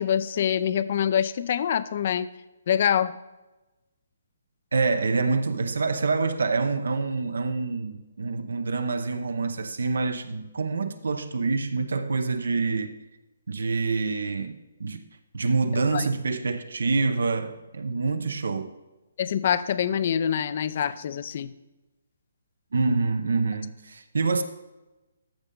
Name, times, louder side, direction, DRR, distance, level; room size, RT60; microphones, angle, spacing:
voice 1, 0.0-2.3 2.7-3.1 15.9-16.0 19.2-21.5, left 9 dB, 45° left, 0.5 m, -25 dB
voice 2, 4.7-12.9 13.5-15.0 15.3-18.7 22.7-24.4, right 4 dB, 80° right, 0.8 m, -26 dB
14.0 x 5.4 x 3.8 m
hypercardioid pair, 155°, 0 cm